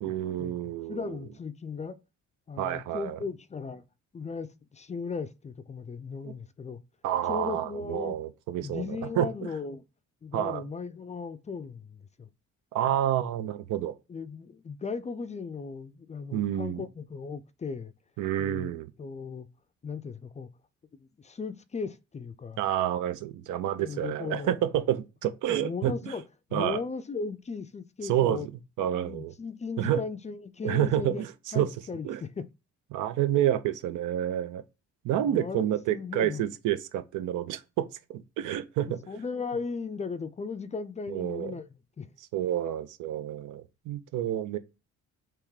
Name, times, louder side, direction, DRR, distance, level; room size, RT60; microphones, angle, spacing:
voice 1, 0.0-1.2 2.6-3.2 6.2-6.3 7.0-9.3 10.3-10.6 12.7-14.0 16.3-16.8 18.2-18.9 22.6-26.1 26.5-26.8 28.0-28.5 28.8-29.3 29.8-30.0 30.6-31.7 32.0-32.2 32.9-34.6 35.0-39.0 41.1-41.5 42.3-44.6, right 11 dB, 85° right, 0.6 m, -29 dB
voice 2, 0.9-2.0 2.5-3.8 4.1-6.8 7.3-8.2 8.6-9.8 10.2-12.3 14.1-17.9 18.4-18.7 19.0-19.5 19.8-20.5 21.0-22.6 23.8-24.5 25.6-26.2 26.5-28.5 28.8-31.3 31.5-32.5 35.3-35.6 35.9-36.5 39.1-41.7 42.0-42.1, left 5 dB, 25° left, 0.4 m, -37 dB
3.5 x 3.0 x 4.7 m
cardioid pair, 90°, 30 cm